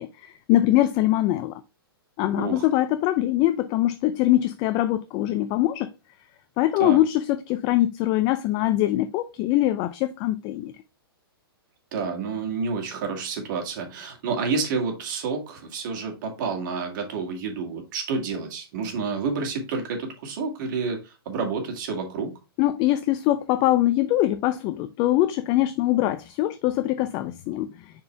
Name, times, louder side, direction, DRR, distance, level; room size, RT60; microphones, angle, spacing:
voice 1, 0.0-1.5 2.2-5.9 6.6-10.7 22.6-27.7, left 14 dB, 35° left, 0.4 m, -23 dB
voice 2, 11.9-22.3, right 4 dB, 50° right, 2.2 m, -29 dB
6.7 x 4.5 x 3.3 m
hypercardioid pair, 125°, 13 cm